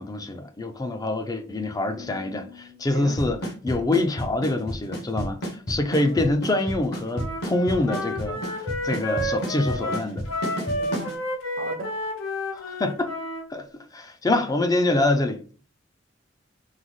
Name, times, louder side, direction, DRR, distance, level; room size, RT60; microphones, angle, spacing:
voice 1, 0.0-10.3 12.5-13.1 13.5-13.7 13.9-15.4, left 2 dB, 20° left, 0.4 m, -25 dB
sound 1, 2.0-4.9, left 6 dB, 35° left, 0.7 m, -49 dB
Drum kit / Snare drum / Bass drum, 3.2-11.1, equal, 60° left, 1.0 m, -30 dB
Wind instrument woodwind instrument, 7.1-13.5, left 1 dB, 85° left, 0.7 m, -31 dB
voice 2, 10.8-11.1 11.6-11.9, right 2 dB, 65° right, 0.7 m, -36 dB
3.8 x 2.0 x 3.1 m
head